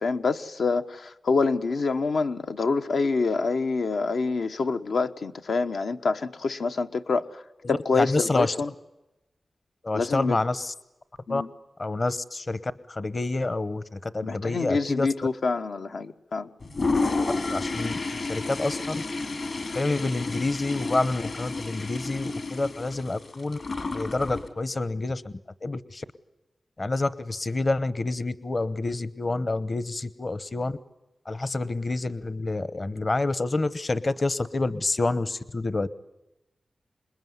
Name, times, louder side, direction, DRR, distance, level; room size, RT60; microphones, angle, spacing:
voice 1, 0.0-7.4 7.7-8.7 9.9-10.4 11.3-11.5 14.2-16.5, left 4 dB, 90° left, 1.2 m, -26 dB
voice 2, 7.6-8.5 9.8-10.7 11.3-11.4 11.8-15.1 17.5-17.9 18.3-19.0 19.7-23.6 23.9-25.3 25.6-26.0 26.8-30.7 31.3-35.9, left 2 dB, 40° left, 0.9 m, -28 dB
Toilet flush, 16.6-24.5, left 3 dB, 65° left, 3.6 m, -30 dB
27.0 x 21.0 x 9.6 m
wide cardioid pair, 90°, 0 cm